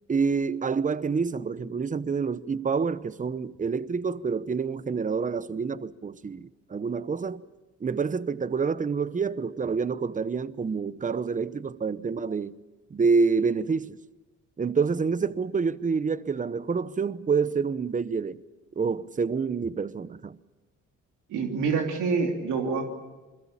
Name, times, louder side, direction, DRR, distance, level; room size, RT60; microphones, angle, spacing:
voice 1, 0.1-7.5 7.8-12.5 12.9-14.0 14.6-18.4 18.8-20.4, right 5 dB, 25° right, 0.9 m, -27 dB
voice 2, 21.3-22.9, right 4 dB, 85° right, 3.1 m, -26 dB
28.5 x 21.5 x 7.4 m
cardioid pair, 90°, 30 cm